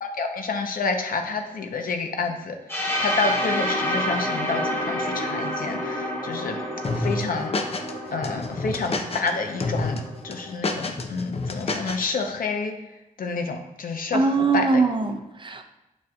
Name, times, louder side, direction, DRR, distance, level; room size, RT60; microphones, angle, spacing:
voice 1, 0.0-2.6 3.0-6.6 6.9-7.7 8.1-12.8 13.2-14.8, left 4 dB, 85° left, 4 dB, 0.7 m, -29 dB
sound 1, 2.7-10.5, equal, 20° left, 2.0 m, -29 dB
sound 2, 6.8-7.9 8.2-9.3 9.6-10.0 10.3-12.1, left 3 dB, 45° left, 0.6 m, -28 dB
voice 2, 14.1-15.6, right 4 dB, 35° right, 5 dB, 0.6 m, -22 dB
7.8 x 5.4 x 2.3 m, 0.96 s
cardioid pair, 75°, 14 cm